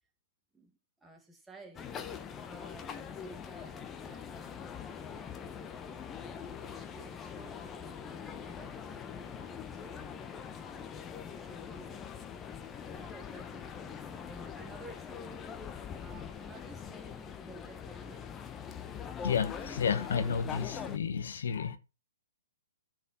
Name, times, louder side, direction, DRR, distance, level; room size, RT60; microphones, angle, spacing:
voice 1, 1.0-1.9 2.4-4.3 6.3-11.0 11.3-12.1 12.8-15.4 16.0-18.3, right 2 dB, 5° right, 2.1 m, -54 dB
sound 1, 1.7-21.0, left 7 dB, 20° left, 0.9 m, -43 dB
voice 2, 19.2-21.8, left 6 dB, 70° left, 1.0 m, -31 dB
13.0 x 5.0 x 4.5 m
hypercardioid pair, 130°, 0 cm